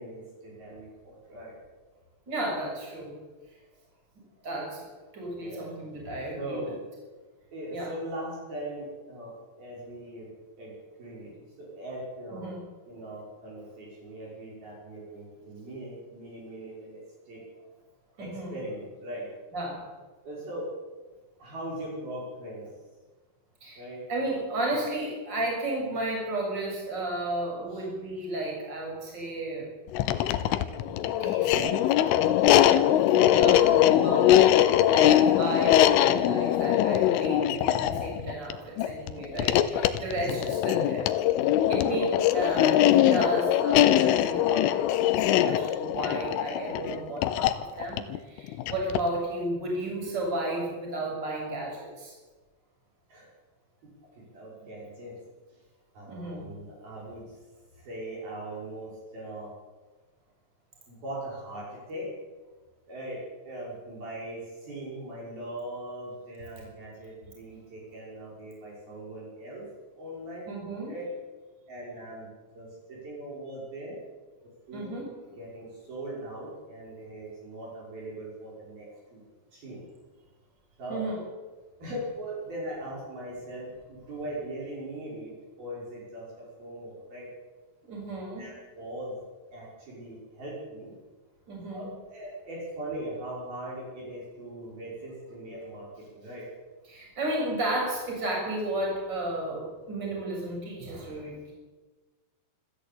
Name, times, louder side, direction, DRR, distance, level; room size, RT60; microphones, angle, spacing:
voice 1, 0.0-1.5 5.4-6.0 6.4-6.8 7.5-10.3 10.6-10.7 11.0-12.5 12.8-17.4 18.2-19.3 20.2-20.7 21.4-22.7 23.8-24.0 27.7-27.8 53.1-53.3 54.0-55.2 55.9-57.5 57.8-59.5 60.9-62.1 62.9-69.7 69.9-70.5 70.8-71.1 71.7-72.3 72.5-74.0 74.7-74.9 75.4-79.2 79.5-79.8 80.8-81.1 81.8-85.3 85.6-87.3 88.4-90.9 91.7-96.5, right 1 dB, 45° right, -5 dB, 7.5 m, -40 dB
voice 2, 2.3-3.1 4.4-4.8 5.1-6.7 7.7-7.9 12.3-12.6 18.2-18.6 19.5-19.8 23.6-23.8 24.1-29.7 30.8-31.9 32.5-41.1 41.7-52.1 56.1-56.4 70.5-70.9 74.7-75.1 80.9-81.2 87.8-88.5 91.5-91.9 96.9-101.5, right 1 dB, 20° right, -2 dB, 7.5 m, -33 dB
sound 1, 29.9-49.2, left 12 dB, 80° left, 3.4 m, -22 dB
27.0 x 13.0 x 8.6 m, 1.3 s
omnidirectional pair, 5.9 m